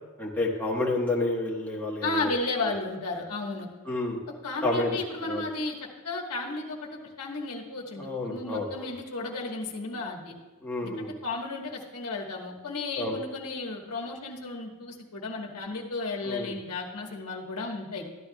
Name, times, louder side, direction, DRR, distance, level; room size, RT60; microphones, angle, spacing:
voice 1, 0.2-2.3 3.9-4.2 4.6-5.0 5.3-5.4 8.0-8.9 10.6-11.1 12.9-13.2 16.2-16.5, left 2 dB, 10° left, -3 dB, 1.2 m, -29 dB
voice 2, 2.0-3.7 4.4-5.7 6.0-10.3 10.8-18.0, left 3 dB, 80° left, 0 dB, 1.4 m, -33 dB
13.5 x 11.0 x 2.3 m, 1.2 s
head